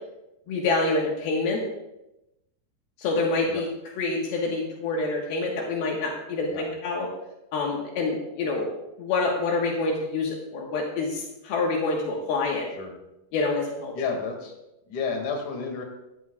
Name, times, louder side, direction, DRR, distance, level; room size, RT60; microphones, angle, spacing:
voice 1, 0.5-1.6 3.0-3.7 4.0-7.1 7.5-8.7 9.0-12.7 13.3-13.9, left 3 dB, 75° left, -1 dB, 3.2 m, -27 dB
voice 2, 13.9-14.5 14.9-15.8, left 5 dB, 55° left, 2 dB, 3.4 m, -31 dB
19.0 x 13.5 x 2.4 m, 0.92 s
omnidirectional pair, 4.6 m